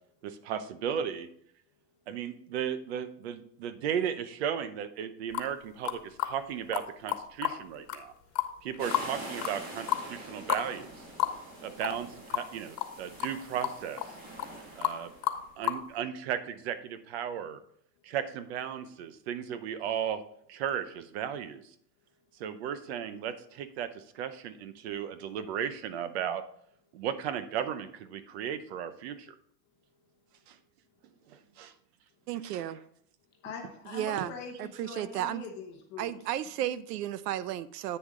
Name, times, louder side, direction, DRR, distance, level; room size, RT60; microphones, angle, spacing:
voice 1, 0.2-1.3 2.1-8.1 8.6-10.9 11.6-14.0 14.7-15.1 15.6-17.6 18.0-20.2 20.5-21.7 22.4-26.4 26.9-29.3 30.5-30.6 31.3-31.7, right 9 dB, 45° right, 12 dB, 0.7 m, -35 dB
sound 1, 5.3-5.5 5.8-6.3 6.7-6.8 7.1-7.6 7.9-8.0 8.4-9.1 9.4-9.6 9.9-10.0 10.5-10.6 10.9-11.0 11.2-11.3 11.8-12.0 12.3-12.5 12.8-12.9 13.2-13.3 13.6-14.1 14.4-14.5 14.8-15.0 15.2-15.8, left 13 dB, 80° left, 1.4 m, -30 dB
sound 2, 8.8-15.4, right 1 dB, 20° right, 1.8 m, -45 dB
voice 2, 32.3-32.8 33.9-34.3 34.6-35.4 36.0-38.0, right 12 dB, 85° right, 15 dB, 0.7 m, -33 dB
voice 3, 33.4-36.1, left 5 dB, 25° left, 1 dB, 1.0 m, -42 dB
9.2 x 6.9 x 3.7 m, 0.68 s
supercardioid pair, 180°, 47 cm